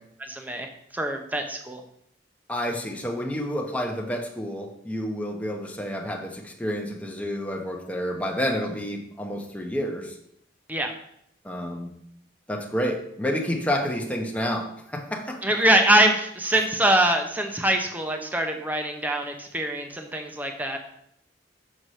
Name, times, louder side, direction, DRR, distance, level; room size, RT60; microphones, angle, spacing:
voice 1, 0.2-1.8 10.7-10.9 15.4-20.8, right 1 dB, 10° right, 4 dB, 0.7 m, -24 dB
voice 2, 2.5-10.2 11.4-11.9 12.5-15.4, equal, 5° left, 0 dB, 1.0 m, -29 dB
6.4 x 4.7 x 5.5 m, 0.73 s
head